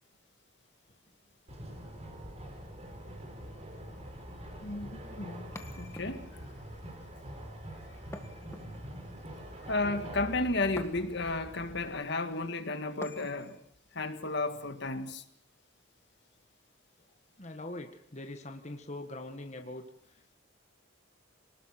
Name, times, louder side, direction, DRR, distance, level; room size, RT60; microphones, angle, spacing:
sound 1, 1.5-11.9, equal, 30° right, 4.2 m, -45 dB
voice 1, 4.6-6.3 9.6-13.6 13.9-15.2, left 2 dB, 55° left, 2.0 m, -33 dB
sound 2, 5.5-6.5 8.1-9.1 10.8-11.4 13.0-13.6, left 1 dB, 15° left, 1.7 m, -46 dB
voice 2, 17.4-19.8, left 1 dB, 35° left, 1.6 m, -42 dB
26.0 x 19.5 x 5.9 m
head